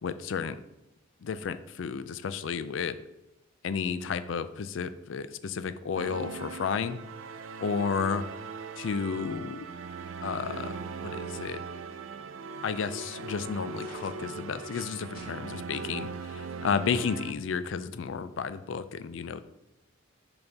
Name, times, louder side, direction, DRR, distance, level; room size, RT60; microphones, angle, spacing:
voice 1, 0.0-0.6 1.2-3.0 3.6-7.0 7.6-8.2 8.8-9.7 10.2-11.6 12.6-19.4, left 6 dB, 70° left, 13 dB, 0.4 m, -32 dB
sound 1, 6.0-17.3, right 5 dB, 80° right, 0.4 m, -40 dB
sound 2, 13.7-14.9 15.1-15.3 15.7-17.0, left 1 dB, 45° left, 1.4 m, -52 dB
6.7 x 4.0 x 3.4 m, 0.90 s
head